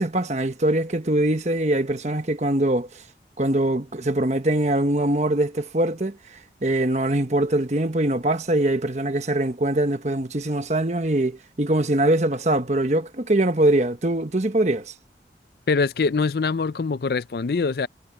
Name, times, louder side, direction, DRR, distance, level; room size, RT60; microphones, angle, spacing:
voice 1, 0.0-3.0 3.4-6.2 6.6-14.9, right 1 dB, 40° right, 1.2 m, -22 dB
voice 2, 15.7-17.9, left 4 dB, 60° left, 0.4 m, -23 dB
head